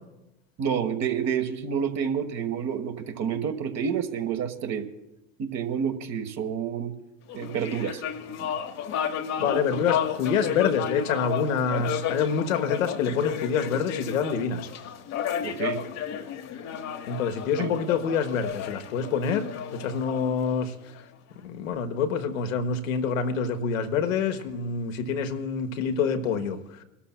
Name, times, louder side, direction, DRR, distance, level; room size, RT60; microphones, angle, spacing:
voice 1, 0.6-4.9 5.4-6.9 7.3-8.0 8.4-8.5 9.4-9.6 15.4-15.8 17.6-17.7, right 7 dB, 40° right, 1.3 m, -29 dB
sound 1, 7.3-21.0, left 9 dB, 40° left, 1.0 m, -32 dB
voice 2, 9.4-14.7 17.1-20.7 21.3-26.8, left 6 dB, 75° left, 1.2 m, -27 dB
29.5 x 13.0 x 2.2 m
hypercardioid pair, 80°, 40 cm